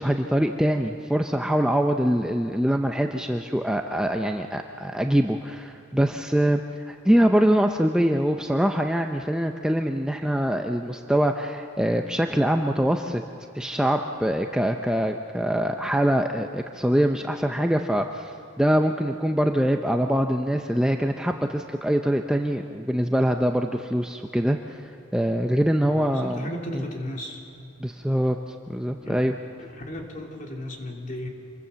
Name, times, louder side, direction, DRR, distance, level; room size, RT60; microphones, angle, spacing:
voice 1, 0.0-13.2 13.5-26.8 27.8-29.3, equal, 5° right, 4 dB, 0.6 m, -24 dB
voice 2, 25.8-27.4 29.0-29.2 29.6-31.3, left 1 dB, 40° left, 1 dB, 2.9 m, -35 dB
27.0 x 22.5 x 7.0 m, 2.9 s
head